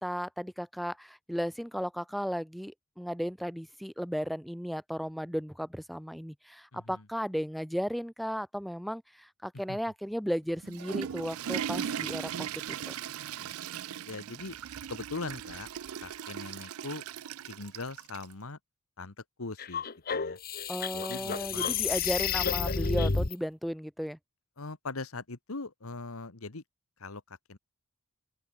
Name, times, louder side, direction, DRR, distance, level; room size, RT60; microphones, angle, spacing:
voice 1, 0.0-12.5 12.9-13.0 20.7-24.2, equal, ahead, 2.1 m, -35 dB
voice 2, 6.7-7.0 9.7-9.8 12.0-12.2 13.3-13.5 14.0-14.6 14.9-15.7 16.0-17.0 17.5-18.6 19.0-19.8 20.1-20.4 20.9-21.8 24.6-26.6 27.0-27.6, left 3 dB, 75° left, 1.5 m, -41 dB
Water / Toilet flush, 10.5-18.3, right 8 dB, 85° right, 0.4 m, -38 dB
sound 1, 19.6-23.3, left 5 dB, 45° left, 1.3 m, -30 dB
open air
head